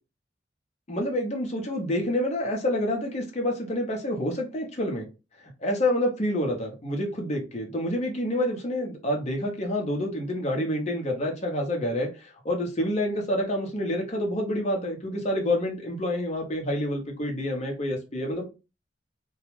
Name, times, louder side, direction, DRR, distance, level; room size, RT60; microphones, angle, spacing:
voice 1, 0.9-5.1 5.4-18.5, left 1 dB, 40° left, 1 dB, 0.7 m, -28 dB
2.2 x 2.0 x 3.0 m, 0.29 s
head